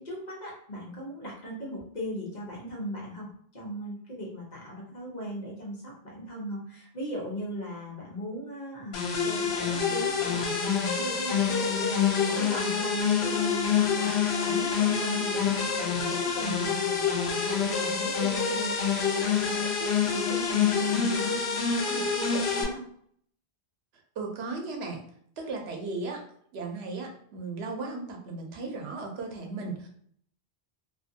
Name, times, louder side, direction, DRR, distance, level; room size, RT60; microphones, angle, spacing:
voice 1, 0.0-15.7 16.1-21.4 21.7-22.8, equal, 45° left, -4 dB, 0.9 m, -38 dB
sound 1, 8.9-22.6, left 6 dB, 80° left, 0.8 m, -27 dB
voice 2, 24.2-25.0 25.4-26.2 26.5-29.9, right 3 dB, 85° right, 2 dB, 0.9 m, -36 dB
2.6 x 2.5 x 2.6 m, 0.62 s
omnidirectional pair, 1.1 m